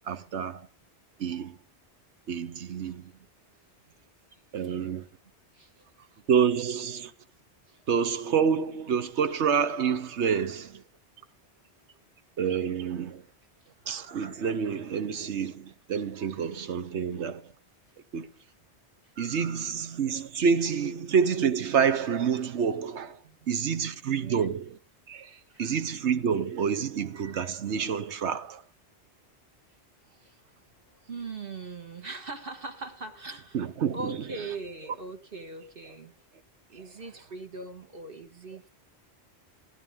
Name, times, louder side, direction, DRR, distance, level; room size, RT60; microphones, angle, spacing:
voice 1, 0.0-0.7 1.2-1.6 2.3-3.1 4.5-5.1 6.3-7.1 7.9-10.8 12.4-13.2 13.9-17.5 18.1-18.3 19.2-24.6 25.1-28.6 33.5-34.2, right 7 dB, 85° right, 1.2 m, -28 dB
voice 2, 4.3-4.9 5.5-5.9 7.7-7.8 23.2-23.5 24.2-24.5 25.3-25.6 30.1-33.6 33.9-36.2 36.7-38.7, right 3 dB, 55° right, 1.7 m, -41 dB
16.0 x 11.0 x 3.6 m
omnidirectional pair, 1.1 m